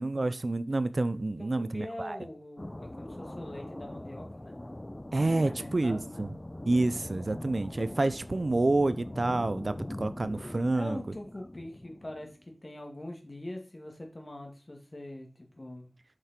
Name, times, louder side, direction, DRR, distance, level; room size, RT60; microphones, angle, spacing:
voice 1, 0.0-2.2 5.1-6.3 6.7-11.0, right 2 dB, 65° right, 14 dB, 0.6 m, -28 dB
voice 2, 1.4-4.6 5.5-6.3 10.7-15.9, left 1 dB, 45° left, 2 dB, 2.3 m, -43 dB
sound 1, 2.6-12.4, left 1 dB, 30° left, 0.4 m, -42 dB
7.9 x 6.0 x 4.4 m, 0.34 s
wide cardioid pair, 40°, 0 cm